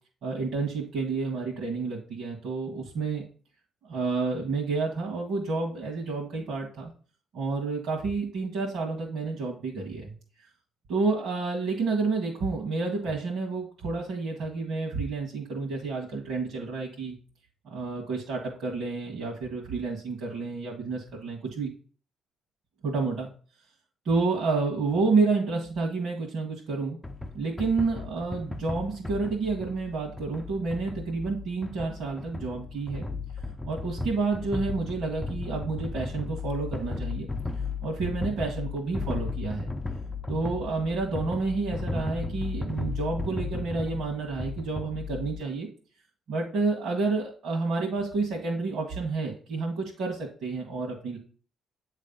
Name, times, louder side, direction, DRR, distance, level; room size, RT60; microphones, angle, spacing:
voice 1, 0.2-3.2 3.8-6.9 7.3-10.1 10.9-17.1 17.7-21.7 22.8-23.3 24.0-27.0 27.3-33.1 33.7-37.3 37.8-39.7 40.3-45.7 46.3-51.2, right 4 dB, 70° right, -2 dB, 1.6 m, -29 dB
sound 1, 27.0-45.4, left 3 dB, 15° left, 0.6 m, -35 dB
8.2 x 3.3 x 5.4 m, 0.41 s
cardioid pair, 90°, 0 cm